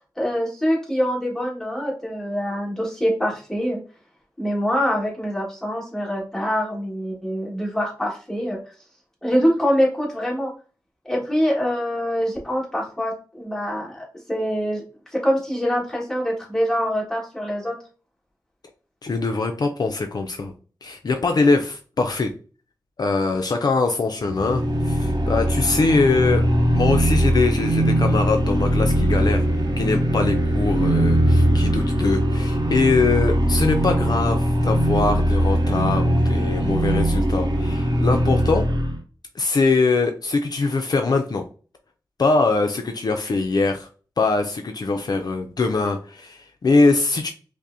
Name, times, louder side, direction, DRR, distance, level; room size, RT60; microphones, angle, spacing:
voice 1, 0.2-3.8 4.4-8.6 9.2-10.5 11.0-14.8 15.1-17.8, equal, 5° left, -4 dB, 1.6 m, -24 dB
voice 2, 19.0-20.5 20.8-22.3 23.0-26.4 26.7-29.5 29.8-38.7 39.4-41.4 42.2-43.9 44.2-47.3, left 3 dB, 60° left, 5 dB, 0.4 m, -22 dB
sound 1, 24.2-39.0, right 1 dB, 60° right, 0.7 m, -20 dB
5.2 x 2.0 x 2.6 m, 0.38 s
wide cardioid pair, 80°, 8 cm